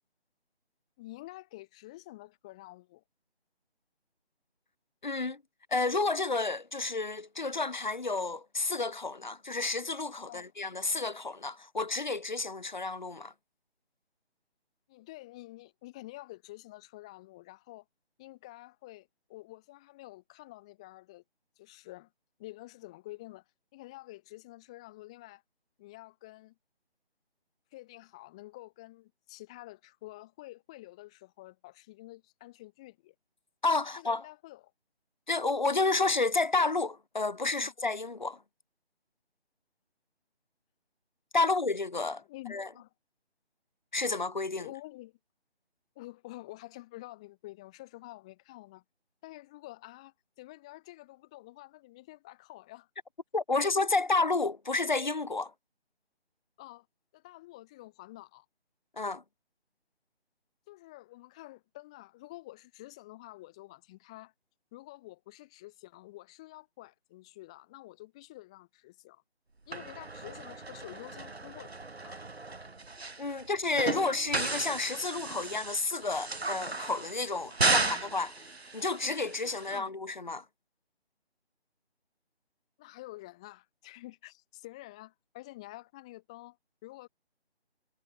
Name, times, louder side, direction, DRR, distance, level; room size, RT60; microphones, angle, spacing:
voice 1, 1.0-3.0 10.2-10.5 14.9-17.8 18.2-21.2 21.6-22.1 22.4-23.4 23.7-25.4 25.8-26.5 27.7-33.1 33.9-34.7 37.6-37.7 41.4-41.5 42.2-42.9 44.6-45.2 45.9-48.8 49.2-52.9 56.6-56.9 57.1-58.4 60.7-64.3 64.7-69.2 69.7-72.2 77.8-77.9 79.0-79.2 79.7-79.9 82.8-86.6 86.8-87.1, left 18 dB, 5° left, 2.9 m, -49 dB
voice 2, 5.0-5.4 5.7-13.3 33.6-34.2 35.3-38.4 41.3-42.2 42.5-42.7 43.9-44.7 53.3-55.5 59.0-59.2 73.2-78.3 78.7-80.4, left 3 dB, 45° left, 1.5 m, -30 dB
sound 1, 69.7-79.8, right 3 dB, 70° right, 6.8 m, -35 dB
figure-of-eight pair, 180°, 33 cm